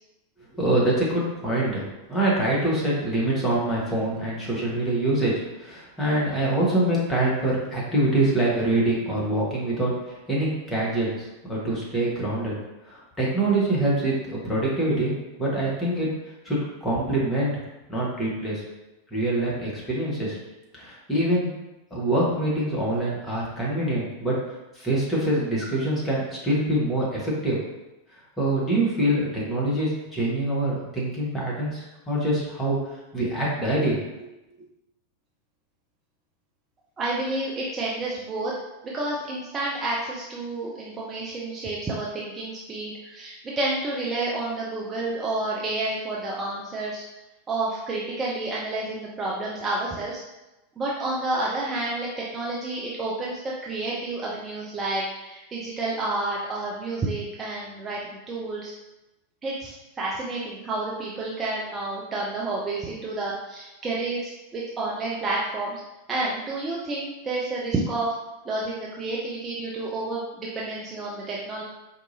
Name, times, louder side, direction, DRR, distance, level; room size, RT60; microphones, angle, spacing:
voice 1, 0.5-9.9 10.3-11.1 11.5-12.5 12.9-15.1 15.4-16.1 16.4-17.5 17.9-18.6 19.1-20.4 20.7-21.6 21.9-24.4 24.8-27.6 28.4-32.8 33.1-34.0, right 1 dB, 10° left, -6 dB, 1.3 m, -25 dB
voice 2, 37.0-38.5 38.8-47.0 47.5-50.2 50.8-58.7 59.4-65.8 66.1-68.1 68.4-71.6, right 2 dB, 20° right, -5 dB, 0.5 m, -30 dB
4.5 x 2.6 x 2.7 m, 1.0 s
figure-of-eight pair, 90°, 0 cm